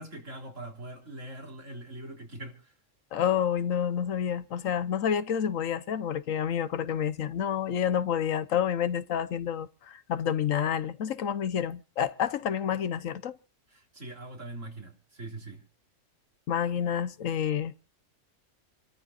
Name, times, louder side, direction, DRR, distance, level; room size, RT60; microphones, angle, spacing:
voice 1, 0.0-2.7 13.7-15.6, right 1 dB, 70° right, 4.1 m, -42 dB
voice 2, 3.1-13.4 16.5-17.7, left 9 dB, 80° left, 1.3 m, -29 dB
29.0 x 13.5 x 2.5 m
omnidirectional pair, 1.3 m